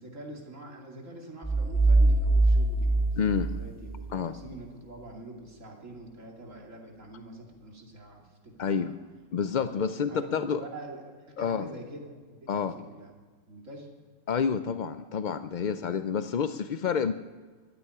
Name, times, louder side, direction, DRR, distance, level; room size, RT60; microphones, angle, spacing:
voice 1, 0.0-8.9 9.5-13.1 13.5-13.9, right 1 dB, 60° right, 0 dB, 3.0 m, -45 dB
sound 1, 1.4-4.1, right 2 dB, 5° left, 1.0 m, -23 dB
voice 2, 3.2-3.5 4.1-4.3 8.6-8.9 9.3-10.6 11.4-11.7 12.5-12.7 14.3-17.1, left 6 dB, 70° left, 11 dB, 0.4 m, -28 dB
13.0 x 9.5 x 10.0 m, 1.4 s
omnidirectional pair, 1.5 m